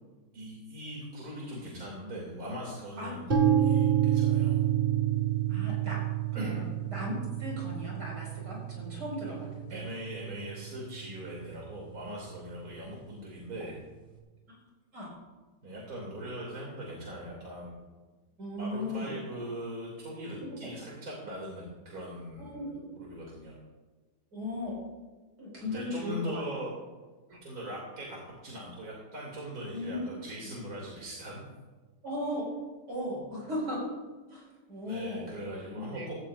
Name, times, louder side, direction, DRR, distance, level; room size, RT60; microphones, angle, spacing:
voice 1, 0.3-4.6 6.3-6.6 9.2-9.3 9.7-13.8 15.6-17.7 18.6-22.7 23.0-23.6 25.6-26.7 27.4-31.4 34.8-36.2, equal, 60° right, -4 dB, 3.3 m, -40 dB
sound 1, 3.3-11.2, right 10 dB, 30° right, 2.1 m, -29 dB
voice 2, 5.5-6.0 6.4-6.6 6.9-9.8 14.5-14.6 14.9-15.1 18.4-19.2 20.4-20.7 22.4-22.8 24.3-24.8 25.4-26.4 27.3-27.4 29.7-30.0 32.0-32.5 32.9-33.8 34.3-35.3 35.7-36.1, left 1 dB, 80° right, -3 dB, 5.6 m, -37 dB
16.5 x 14.5 x 2.6 m, 1.3 s
omnidirectional pair, 1.8 m